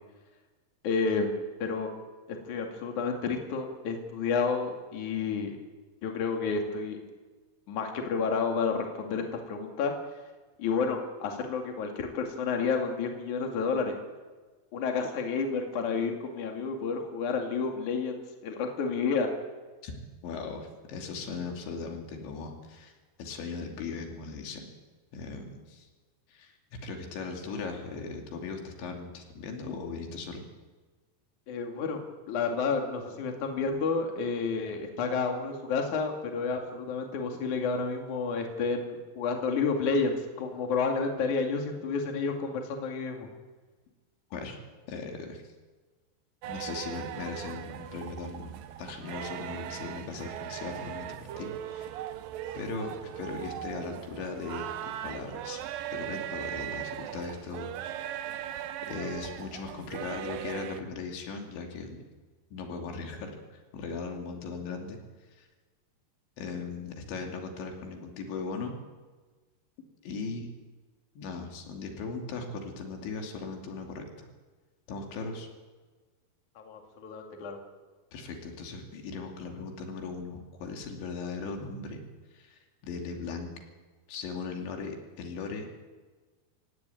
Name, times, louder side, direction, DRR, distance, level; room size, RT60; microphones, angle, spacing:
voice 1, 0.8-1.3 1.6-1.9 2.3-5.6 6.0-7.0 7.7-9.9 10.6-14.0 14.7-19.3 31.5-43.3 76.6-77.6, left 5 dB, 50° left, 3 dB, 3.4 m, -30 dB
voice 2, 20.2-22.9 23.2-24.7 25.1-25.9 26.3-26.6 26.8-30.4 44.3-44.6 44.9-45.5 46.5-51.9 52.5-55.6 55.9-57.7 58.9-62.0 62.5-65.0 65.3-65.5 66.4-68.7 70.0-70.5 71.2-74.3 74.9-75.5 78.1-82.0 82.3-83.5 84.1-85.7, left 4 dB, 85° left, 3 dB, 4.9 m, -38 dB
sound 1, 46.4-60.8, right 11 dB, 75° right, 2.2 m, -39 dB
25.5 x 16.5 x 9.3 m, 1.3 s
omnidirectional pair, 5.1 m